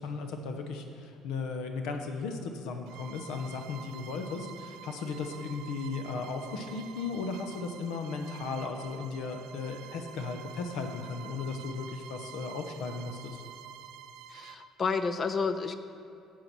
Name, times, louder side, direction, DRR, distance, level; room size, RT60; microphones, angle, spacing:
voice 1, 0.0-13.4, left 4 dB, 80° left, 5 dB, 0.8 m, -36 dB
Bowed string instrument, 2.9-14.7, right 8 dB, 80° right, 0.4 m, -48 dB
voice 2, 14.3-15.8, left 5 dB, 30° left, 10 dB, 0.5 m, -30 dB
9.1 x 4.8 x 6.0 m, 2.6 s
cardioid pair, 135°, 0 cm